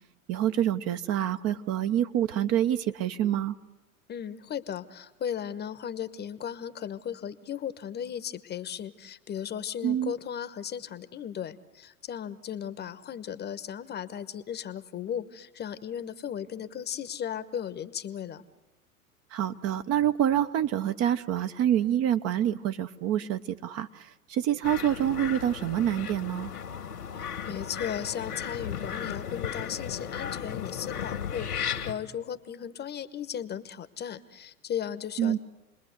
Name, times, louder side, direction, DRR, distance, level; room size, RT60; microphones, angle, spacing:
voice 1, 0.3-3.5 9.8-10.1 19.3-26.5 35.2-35.4, right 11 dB, 35° right, 9 dB, 0.9 m, -27 dB
voice 2, 4.1-18.4 27.1-35.4, left 9 dB, 20° left, 13 dB, 1.1 m, -36 dB
sound 1, 24.6-31.9, left 8 dB, 80° left, 2.2 m, -35 dB
29.0 x 21.0 x 8.1 m, 1.0 s
figure-of-eight pair, 95°, 45 cm